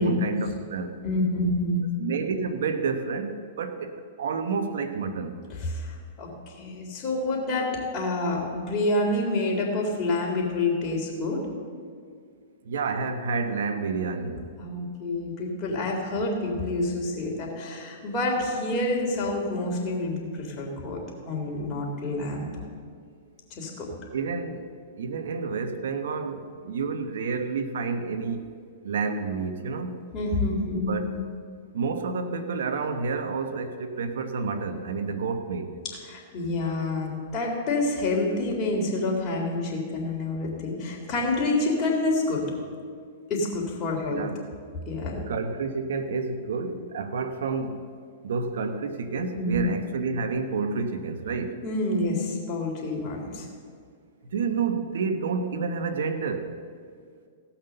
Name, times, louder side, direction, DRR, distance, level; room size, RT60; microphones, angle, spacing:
voice 1, 0.0-1.0 2.0-5.4 12.6-14.5 24.1-24.7 25.0-28.5 28.8-29.9 30.7-31.1 31.7-35.8 44.1-44.4 45.3-47.9 48.2-51.6 54.3-56.5, right 4 dB, 75° right, 8 dB, 1.2 m, -29 dB
voice 2, 1.0-1.8 5.6-11.4 14.6-21.0 21.3-22.5 23.5-23.9 30.1-31.0 36.1-42.5 43.3-44.3 44.9-45.2 49.3-49.6 51.6-53.5, left 2 dB, 35° left, -2 dB, 3.4 m, -28 dB
17.0 x 6.0 x 6.7 m, 2.1 s
hypercardioid pair, 125°, 0 cm